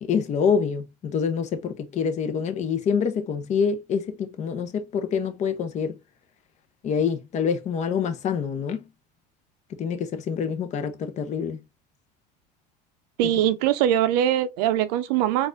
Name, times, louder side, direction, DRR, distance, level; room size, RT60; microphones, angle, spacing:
voice 1, 0.0-6.0 6.8-8.9 9.8-11.6, left 6 dB, 35° left, 0.6 m, -26 dB
voice 2, 13.2-15.5, right 11 dB, 75° right, 0.5 m, -22 dB
4.0 x 2.4 x 2.5 m
supercardioid pair, 110°, 21 cm